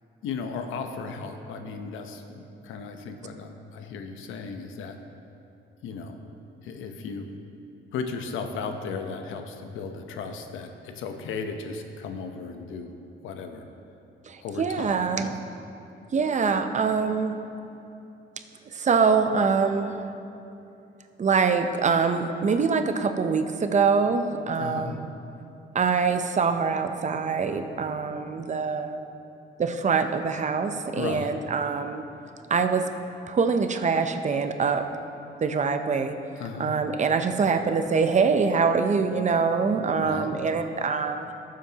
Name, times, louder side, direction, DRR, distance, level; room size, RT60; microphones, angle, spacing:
voice 1, 0.2-5.0 5.8-6.2 6.6-7.3 7.9-12.9 13.2-13.6 14.4-15.5 24.6-25.0 31.0-31.4 36.4-36.7 40.0-40.3, left 5 dB, 85° left, 6 dB, 0.8 m, -35 dB
voice 2, 14.3-15.3 16.1-17.4 18.7-20.0 21.2-25.1 25.7-29.0 29.6-32.0 32.5-32.9 33.3-34.8 35.4-36.2 36.6-41.2, right 5 dB, 35° right, 7 dB, 0.6 m, -24 dB
14.0 x 7.5 x 2.9 m, 2.8 s
cardioid pair, 90°, 20 cm